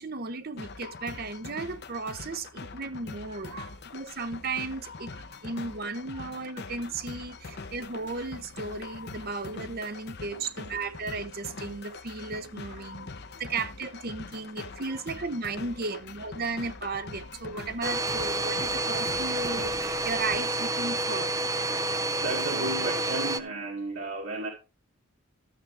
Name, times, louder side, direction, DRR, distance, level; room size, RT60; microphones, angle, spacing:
voice 1, 0.0-3.5 3.9-13.1 13.4-21.3, right 3 dB, 45° right, 0.8 m, -35 dB
sound 1, 0.6-20.4, left 4 dB, 50° left, 0.8 m, -43 dB
voice 2, 3.0-3.7 5.3-6.3 7.4-7.8 9.2-9.3 10.3-10.5 12.6-13.3 14.8-15.0 17.5-17.7 21.7-24.5, right 2 dB, 65° right, 2.2 m, -37 dB
Domestic sounds home sounds, 17.8-23.4, right 2 dB, 15° right, 0.5 m, -29 dB
13.0 x 7.4 x 3.4 m
head